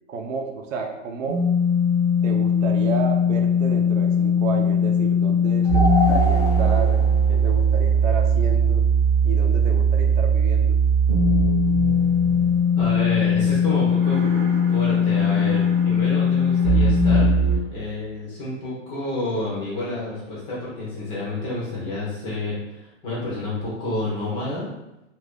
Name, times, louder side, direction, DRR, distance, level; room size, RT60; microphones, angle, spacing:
voice 1, 0.1-1.4 2.2-7.0 7.3-8.8 9.2-10.8, right 5 dB, 80° right, 3 dB, 0.7 m, -31 dB
sound 1, 1.3-17.6, left 1 dB, 25° right, 0.7 m, -19 dB
voice 2, 12.8-14.2 14.7-17.3 17.7-24.7, left 2 dB, 15° left, -6 dB, 0.5 m, -29 dB
2.6 x 2.5 x 3.4 m, 0.91 s
hypercardioid pair, 155°, 38 cm